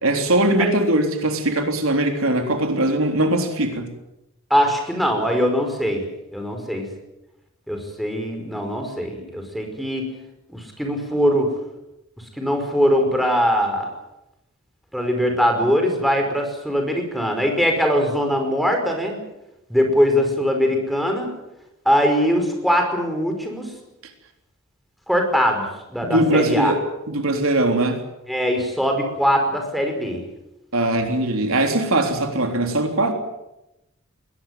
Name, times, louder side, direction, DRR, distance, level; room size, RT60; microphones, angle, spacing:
voice 1, 0.0-3.9 26.0-28.0 30.7-33.1, right 1 dB, 75° right, 4 dB, 3.6 m, -21 dB
voice 2, 4.5-6.1 6.3-6.9 7.7-10.1 10.5-11.5 12.4-13.9 14.9-19.2 19.7-21.3 21.9-23.7 25.1-26.7 28.3-30.2, equal, ahead, 3 dB, 5.3 m, -21 dB
22.0 x 19.0 x 9.4 m, 0.91 s
head